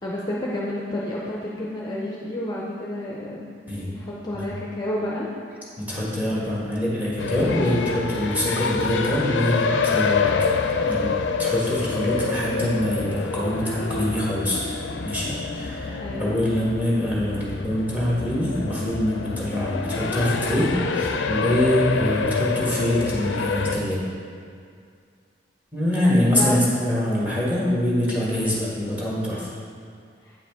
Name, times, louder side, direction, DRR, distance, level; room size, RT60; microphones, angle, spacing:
voice 1, 0.0-5.3 16.0-16.5 26.0-26.7 30.2-30.3, left 1 dB, 20° left, -5 dB, 0.5 m, -30 dB
voice 2, 5.8-10.3 10.8-11.1 11.4-14.6 15.0-24.0 25.7-29.5, equal, 10° right, -7 dB, 1.5 m, -24 dB
sound 1, 7.2-23.8, left 5 dB, 70° left, 0.4 m, -27 dB
8.6 x 4.9 x 3.5 m, 2.2 s
head